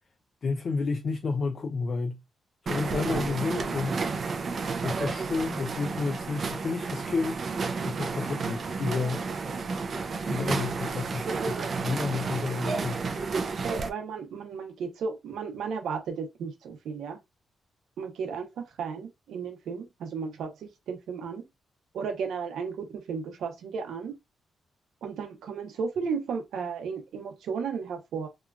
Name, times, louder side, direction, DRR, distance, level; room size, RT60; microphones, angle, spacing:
voice 1, 0.4-2.2 2.6-4.0 4.8-7.4 7.8-9.6 10.3-13.0, left 4 dB, 45° left, 0.3 m, -31 dB
sound 1, 2.7-13.9, right 4 dB, 45° right, 0.4 m, -31 dB
voice 2, 2.9-3.3 9.0-9.5 11.4-12.1 13.6-17.2 18.0-21.4 21.9-24.2 25.0-28.3, right 5 dB, 85° right, 0.7 m, -34 dB
2.8 x 2.3 x 2.4 m
wide cardioid pair, 145°, 0 cm